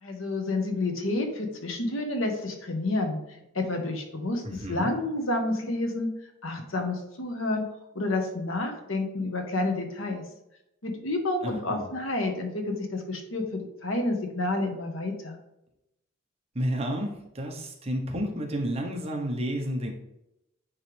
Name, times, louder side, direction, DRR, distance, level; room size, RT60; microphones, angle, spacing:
voice 1, 0.0-6.1 6.4-7.7 7.9-10.2 10.8-15.4, left 2 dB, 75° left, 4 dB, 1.2 m, -29 dB
voice 2, 4.4-4.9 11.4-11.9 16.5-19.9, equal, 30° right, 2 dB, 1.0 m, -31 dB
9.6 x 3.2 x 3.4 m, 0.86 s
head